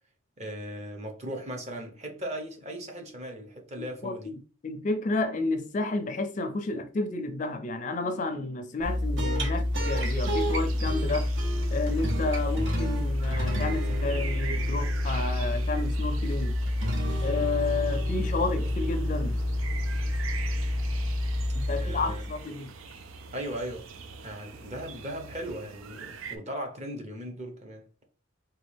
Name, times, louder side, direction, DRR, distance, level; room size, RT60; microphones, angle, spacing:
voice 1, 0.4-4.3 21.7-22.2 23.3-23.9 24.2-27.9, right 1 dB, 35° right, 0.8 m, -38 dB
voice 2, 4.0-11.3 11.7-16.6 17.2-19.4 21.5-22.7, left 3 dB, 40° left, 0.4 m, -31 dB
sound 1, 8.8-22.4, left 1 dB, 65° right, 1.0 m, -28 dB
sound 2, 9.8-26.4, right 5 dB, 90° right, 0.5 m, -43 dB
3.9 x 2.3 x 3.3 m
head